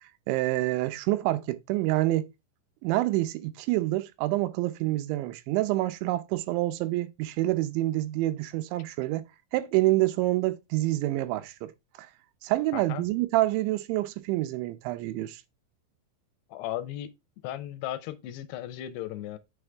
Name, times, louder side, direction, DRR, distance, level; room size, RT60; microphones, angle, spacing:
voice 1, 0.3-2.3 2.8-9.3 9.5-11.7 12.0-12.1 12.4-15.4, right 17 dB, 90° right, 3.1 m, -27 dB
voice 2, 12.7-13.0 16.5-17.1 17.4-19.4, left 12 dB, 80° left, 2.6 m, -36 dB
7.0 x 6.4 x 3.4 m
omnidirectional pair, 5.2 m